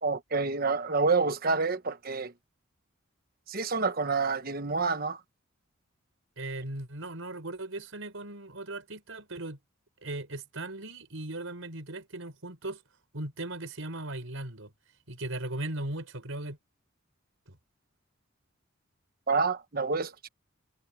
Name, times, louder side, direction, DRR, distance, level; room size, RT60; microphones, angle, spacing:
voice 1, 0.0-2.3 3.5-5.2 19.3-20.3, right 4 dB, 50° right, 1.2 m, -28 dB
voice 2, 6.4-9.6 10.0-12.8 13.1-14.7 15.1-16.6 17.5-17.6, right 2 dB, 85° right, 4.5 m, -38 dB
head